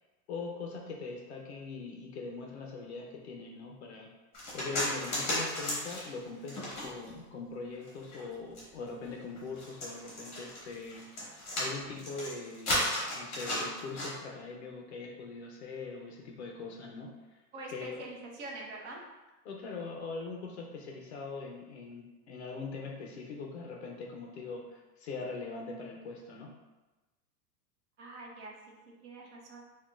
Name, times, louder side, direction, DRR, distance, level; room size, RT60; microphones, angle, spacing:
voice 1, 0.3-4.1 4.5-17.4 17.7-18.1 19.4-26.5, left 4 dB, 45° left, 0 dB, 0.5 m, -42 dB
sound 1, 4.3-7.2 7.7-14.1, left 1 dB, 25° left, 1.4 m, -34 dB
voice 2, 17.5-19.0 28.0-29.7, right 2 dB, 45° right, -1 dB, 0.7 m, -45 dB
5.5 x 2.2 x 2.3 m, 1.1 s
supercardioid pair, 170°, 47 cm